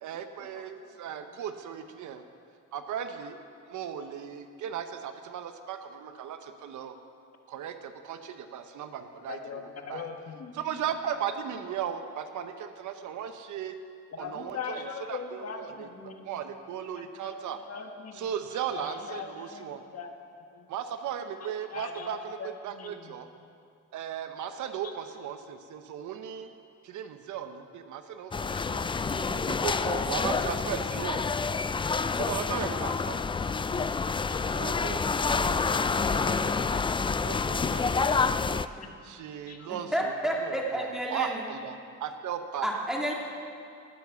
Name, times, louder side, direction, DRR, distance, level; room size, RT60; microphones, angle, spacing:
voice 1, 0.0-2.2 2.7-3.4 3.7-7.0 7.5-10.1 10.5-13.7 14.2-15.9 16.2-17.6 18.1-19.8 20.7-23.3 23.9-26.5 26.8-28.9 29.5-31.2 32.2-33.2 34.5-35.0 35.3-36.7 37.0-38.7 39.0-40.1 40.4-42.7, right 8 dB, 75° right, 8 dB, 1.0 m, -37 dB
voice 2, 9.3-10.6 14.1-16.3 17.2-17.4 17.7-18.2 18.7-20.1 20.5-20.7 21.7-22.5 22.7-23.1 28.5-28.7 32.3-32.4 33.7-33.9 34.3-34.4 39.5-39.7, left 6 dB, 55° left, 4 dB, 1.4 m, -40 dB
sound 1, 28.3-38.7, left 5 dB, 15° left, 0.3 m, -28 dB
voice 3, 29.0-29.4 38.8-38.9 39.9-41.4 42.6-43.1, right 1 dB, ahead, -2 dB, 2.8 m, -31 dB
17.5 x 7.4 x 7.0 m, 2.4 s
cardioid pair, 90°, 30 cm